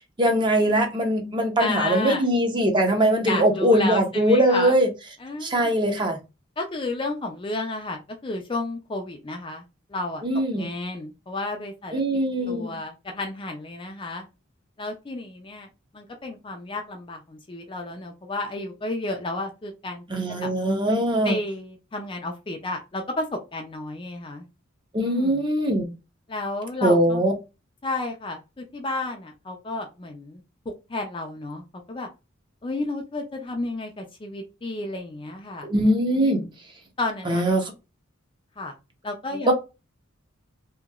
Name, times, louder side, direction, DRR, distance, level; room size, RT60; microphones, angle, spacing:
voice 1, 0.2-4.9 5.4-6.2 10.2-10.7 11.9-12.8 20.1-21.4 24.9-25.9 26.8-27.3 35.6-36.4 37.3-37.7 39.5-39.6, right 1 dB, 25° right, 0.7 m, -21 dB
voice 2, 1.6-2.2 3.2-4.7 5.2-5.8 6.6-10.2 10.5-12.0 12.5-14.3 14.8-15.7 15.9-20.0 20.4-20.5 21.2-24.5 25.0-25.5 26.3-27.2 27.8-32.1 32.6-35.7 36.2-36.5 37.0-37.4 38.6-38.7 39.0-39.5, left 2 dB, 25° left, 0.4 m, -32 dB
2.9 x 2.7 x 2.3 m
head